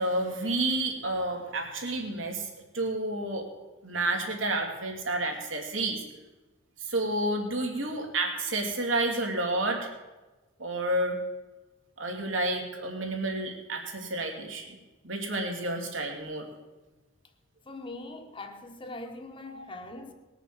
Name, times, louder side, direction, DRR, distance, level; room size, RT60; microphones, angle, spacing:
voice 1, 0.0-2.5 2.7-3.4 3.8-6.0 6.8-9.9 10.6-11.2 12.0-14.6 15.0-16.5 19.5-19.6, right 2 dB, 85° right, 2.9 m, -30 dB
voice 2, 17.6-20.1, left 2 dB, 25° left, 1.4 m, -41 dB
19.5 x 6.8 x 7.6 m
head